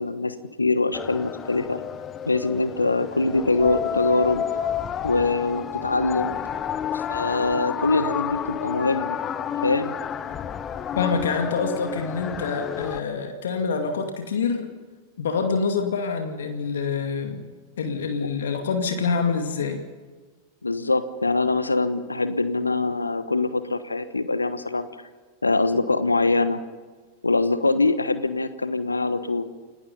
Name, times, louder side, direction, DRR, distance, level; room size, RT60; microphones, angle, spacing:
voice 1, 0.0-1.8 2.3-4.4 5.0-6.4 6.9-9.2 9.6-9.9 18.2-18.3 20.6-24.9 25.4-26.6 27.2-29.4, left 3 dB, 80° left, 13 dB, 1.1 m, -23 dB
sound 1, 0.9-13.0, left 8 dB, 25° left, 1.0 m, -30 dB
voice 2, 11.0-14.7 15.2-17.5 17.8-19.8, left 5 dB, 65° left, 5 dB, 2.3 m, -26 dB
29.0 x 18.5 x 5.5 m, 1.4 s
figure-of-eight pair, 90°, 0 cm